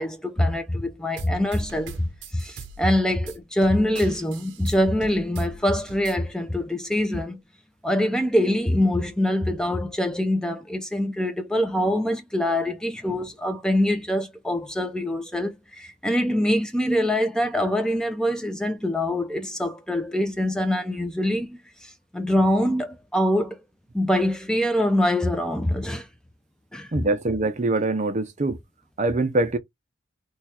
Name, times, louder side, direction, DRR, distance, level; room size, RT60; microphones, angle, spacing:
voice 1, 0.0-7.4 7.8-23.6 23.9-26.1 26.7-26.9, left 1 dB, 5° left, 0.5 m, -24 dB
sound 1, 1.2-6.2, right 4 dB, 85° right, 0.6 m, -42 dB
voice 2, 26.9-28.6 29.0-29.6, right 2 dB, 40° right, 0.6 m, -24 dB
3.1 x 2.4 x 4.2 m
head